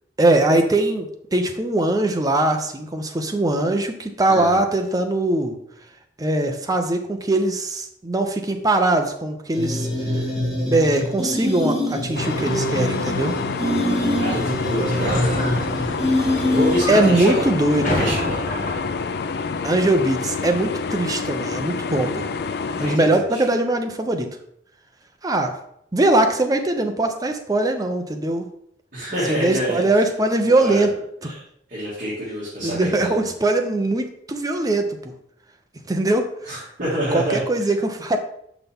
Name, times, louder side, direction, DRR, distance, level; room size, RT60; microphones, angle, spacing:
voice 1, 0.2-5.5 6.2-10.2 10.7-13.4 16.9-18.2 19.6-22.3 22.8-24.3 25.2-25.6 25.9-28.5 29.3-30.9 31.2-31.3 32.6-35.0 35.9-36.3 37.1-38.2, right 2 dB, 20° right, 5 dB, 0.6 m, -21 dB
voice 2, 4.3-4.6 14.2-15.4 16.5-17.5 17.8-18.4 22.7-23.5 28.9-29.8 30.4-30.9 31.2-31.3 31.7-33.2 36.4-37.7, equal, 45° right, -9 dB, 2.2 m, -26 dB
sound 1, 9.5-17.0, left 1 dB, 5° right, 2.0 m, -24 dB
sound 2, 12.1-23.0, left 5 dB, 60° left, 0.4 m, -28 dB
sound 3, 14.0-19.0, left 1 dB, 45° left, 1.2 m, -30 dB
5.9 x 5.7 x 3.6 m, 0.72 s
head